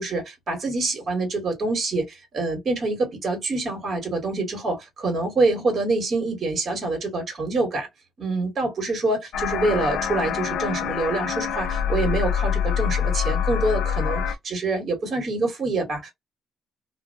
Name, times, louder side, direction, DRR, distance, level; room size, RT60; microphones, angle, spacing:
voice 1, 0.0-7.9 8.2-16.1, right 2 dB, 50° right, 1.4 m, -26 dB
sound 1, 9.3-14.3, left 8 dB, 80° left, 0.4 m, -25 dB
2.5 x 2.1 x 2.5 m
cardioid pair, 90°, 0 cm